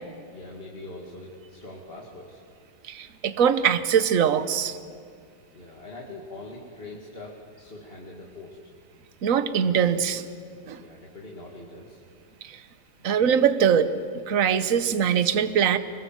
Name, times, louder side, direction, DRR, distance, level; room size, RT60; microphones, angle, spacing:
voice 1, 0.3-2.4 5.5-8.6 10.8-12.0, left 2 dB, 25° left, -3 dB, 2.2 m, -42 dB
voice 2, 2.8-4.8 9.2-10.2 10.7-10.8 12.4-12.6 13.0-15.8, right 8 dB, 50° right, 12 dB, 1.1 m, -22 dB
25.0 x 21.0 x 7.5 m, 2.1 s
omnidirectional pair, 2.3 m